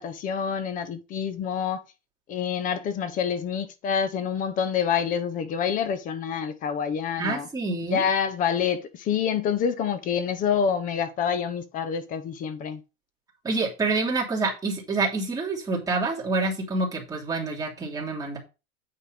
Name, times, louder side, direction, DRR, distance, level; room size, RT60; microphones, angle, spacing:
voice 1, 0.0-1.8 2.3-7.5 7.9-12.8, left 7 dB, 25° left, 0.6 m, -27 dB
voice 2, 7.2-8.0 13.4-18.4, right 3 dB, 10° right, 2.9 m, -27 dB
8.6 x 4.6 x 5.1 m
supercardioid pair, 155°, 36 cm